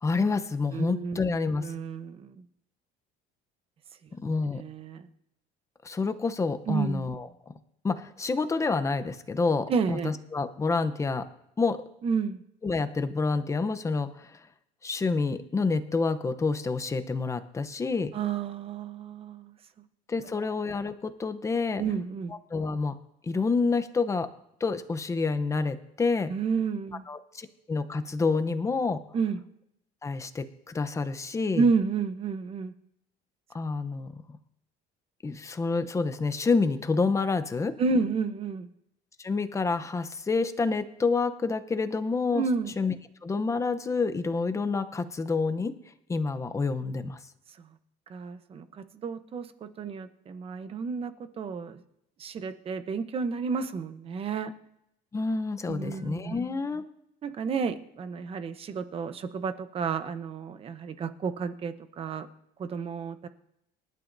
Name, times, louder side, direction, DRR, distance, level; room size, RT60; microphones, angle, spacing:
voice 1, 0.0-1.7 4.2-4.6 5.8-7.3 7.8-11.2 11.6-11.8 12.6-14.4 14.8-18.1 20.1-21.8 22.5-23.0 23.2-24.3 24.6-26.3 27.1-29.0 30.0-31.6 33.5-34.2 35.2-37.7 39.2-42.4 42.8-42.9 43.2-45.7 46.1-47.2 55.1-56.8, left 4 dB, 15° left, 11 dB, 0.7 m, -28 dB
voice 2, 0.7-1.2 1.6-2.3 4.6-5.1 6.7-7.1 9.7-10.1 12.0-12.4 18.1-19.5 21.8-22.3 26.3-27.0 29.1-29.4 31.6-32.7 37.8-38.7 42.3-42.7 48.1-51.8 52.2-54.5 55.7-56.3 57.2-62.3 62.6-63.3, right 5 dB, 30° right, 10 dB, 0.9 m, -31 dB
27.0 x 12.0 x 2.7 m, 0.80 s
cardioid pair, 150°, 19 cm